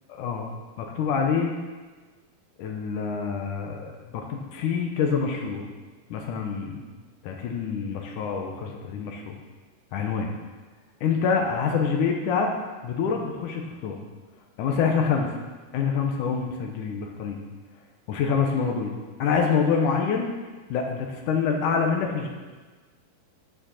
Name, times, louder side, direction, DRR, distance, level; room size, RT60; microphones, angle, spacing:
voice 1, 0.1-0.5 0.8-1.5 2.6-5.6 6.1-6.9 7.2-9.4 9.9-10.3 11.0-12.5 12.8-14.0 14.6-15.3 15.7-17.4 18.1-20.3 20.7-22.3, left 6 dB, 75° left, 2 dB, 1.9 m, -26 dB
10.5 x 6.3 x 6.3 m, 1.3 s
omnidirectional pair, 4.6 m